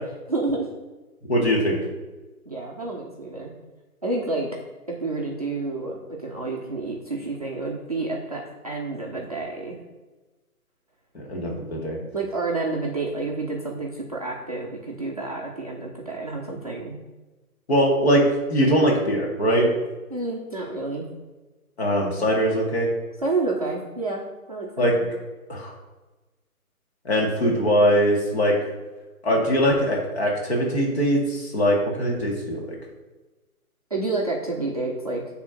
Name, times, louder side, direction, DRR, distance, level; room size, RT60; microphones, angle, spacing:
voice 1, 0.3-0.7 2.5-3.5 4.0-4.5 4.9-9.8 12.1-17.0 20.1-21.1 23.2-24.2 24.5-25.0 33.9-35.2, right 3 dB, 25° right, -2 dB, 0.6 m, -29 dB
voice 2, 1.3-1.8 11.1-12.0 17.7-18.2 18.5-19.7 21.8-22.9 24.8-25.0 25.5-25.7 27.0-28.6 29.2-32.7, equal, 45° left, -1 dB, 2.4 m, -21 dB
8.5 x 3.6 x 5.9 m, 1.2 s
hypercardioid pair, 170°, 45 cm